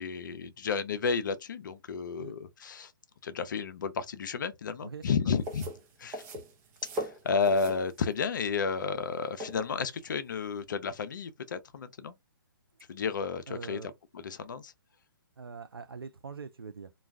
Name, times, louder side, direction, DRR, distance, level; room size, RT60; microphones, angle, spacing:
voice 1, 0.0-2.9 3.2-5.7 6.0-6.2 6.9-12.2 12.9-14.7, left 5 dB, 60° left, 0.5 m, -32 dB
sound 1, 5.4-10.6, equal, 20° right, 0.7 m, -41 dB
voice 2, 13.5-13.9 15.4-16.9, right 5 dB, 85° right, 0.5 m, -43 dB
2.3 x 2.3 x 3.3 m
figure-of-eight pair, 135°, 12 cm